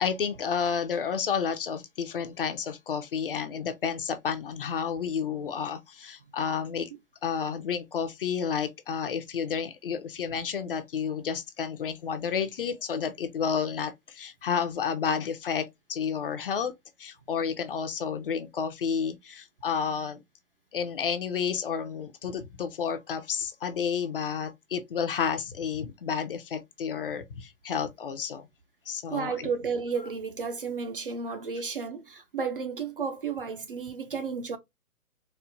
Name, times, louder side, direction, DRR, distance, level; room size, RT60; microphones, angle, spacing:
voice 1, 0.0-6.9 7.2-16.7 17.0-20.2 20.7-28.5 28.9-29.5, left 6 dB, 40° left, 0.5 m, -31 dB
voice 2, 29.1-34.6, right 5 dB, 40° right, 0.4 m, -32 dB
4.3 x 2.1 x 2.5 m
hypercardioid pair, 145°, 44 cm